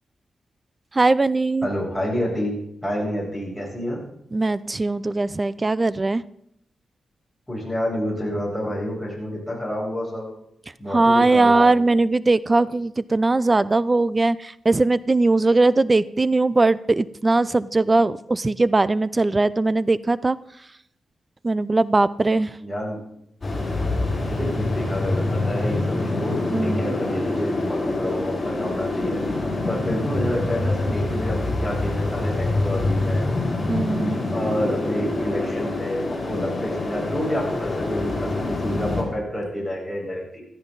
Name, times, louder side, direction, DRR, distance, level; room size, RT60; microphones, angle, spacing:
voice 1, 1.0-1.7 4.3-6.2 10.9-20.4 21.4-22.5 26.5-26.8 33.7-34.2, right 2 dB, 25° right, 18 dB, 0.5 m, -20 dB
voice 2, 1.6-4.0 7.5-10.3 10.8-11.7 22.6-23.0 24.1-29.2 29.7-33.3 34.3-40.4, equal, ahead, -2 dB, 7.5 m, -29 dB
sound 1, 23.4-39.0, left 2 dB, 30° left, 7.1 m, -25 dB
16.0 x 13.5 x 4.0 m, 0.76 s
cardioid pair, 85°, 0 cm